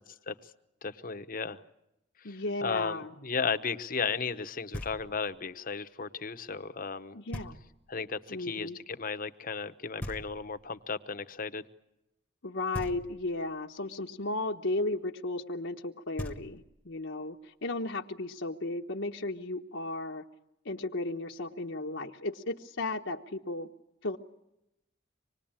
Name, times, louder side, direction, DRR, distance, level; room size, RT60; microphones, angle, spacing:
voice 1, 0.8-1.6 2.2-7.2 7.9-11.6, left 5 dB, 45° left, 11 dB, 1.0 m, -35 dB
voice 2, 2.2-3.1 7.1-7.5 8.3-8.8 12.4-20.3 20.6-23.7 24.0-24.2, left 2 dB, 70° left, 1 dB, 1.1 m, -35 dB
Knock, 4.7-5.4 7.3-8.0 10.0-10.8 12.7-13.5 15.8-15.9 16.2-17.0, equal, 5° left, 1.2 m, -41 dB
25.5 x 20.5 x 8.9 m, 0.87 s
head